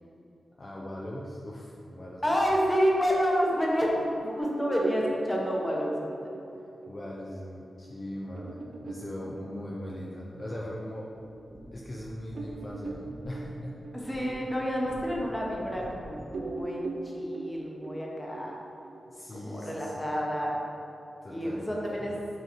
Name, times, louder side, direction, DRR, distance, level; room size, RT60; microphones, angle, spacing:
voice 1, 0.6-2.4 6.5-11.1 11.7-14.3 19.1-20.2 21.2-22.1, left 1 dB, 40° left, -4 dB, 0.6 m, -40 dB
voice 2, 2.2-6.1 13.9-16.8 17.1-18.6 19.3-20.6 21.3-22.1, equal, 15° left, -3 dB, 1.1 m, -29 dB
sound 1, 4.4-11.4 11.9-12.0 12.3-15.9 16.3-19.4, right 2 dB, 80° right, 0.5 m, -39 dB
sound 2, 11.1-16.5, equal, 35° right, 0.7 m, -48 dB
5.6 x 3.7 x 4.5 m, 2.8 s
wide cardioid pair, 90°, 0 cm